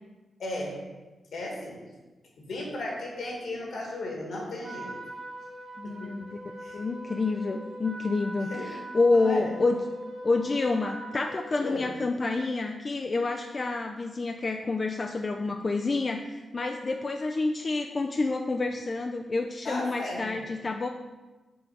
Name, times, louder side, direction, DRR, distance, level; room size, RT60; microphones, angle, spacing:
voice 1, 0.4-0.8 1.3-1.8 2.4-5.0 5.8-6.1 6.6-6.8 8.5-8.7 9.1-9.5 11.6-11.9 19.6-20.4, left 1 dB, 70° left, -1 dB, 1.7 m, -35 dB
Trumpet, 4.6-11.5, right 1 dB, 55° right, 0.9 m, -42 dB
voice 2, 5.8-6.3 6.7-9.8 10.2-20.9, left 3 dB, 35° left, 4 dB, 0.3 m, -28 dB
5.7 x 3.7 x 5.3 m, 1.2 s
wide cardioid pair, 110°, 0 cm